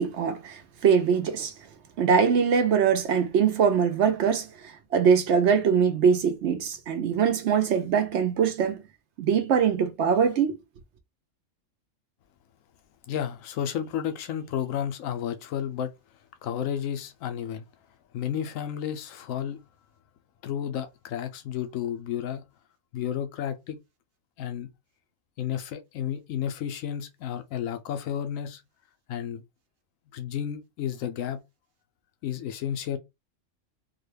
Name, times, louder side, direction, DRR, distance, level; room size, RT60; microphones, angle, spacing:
voice 1, 0.0-1.5 2.0-8.8 9.2-10.6, right 7 dB, 65° right, 0.9 m, -23 dB
voice 2, 13.1-15.9 16.4-17.6 18.1-19.6 20.4-22.4 22.9-23.8 24.4-24.7 25.4-28.6 29.1-29.4 30.1-31.4 32.2-33.0, left 9 dB, 85° left, 1.0 m, -32 dB
3.7 x 2.2 x 3.2 m
omnidirectional pair, 1.3 m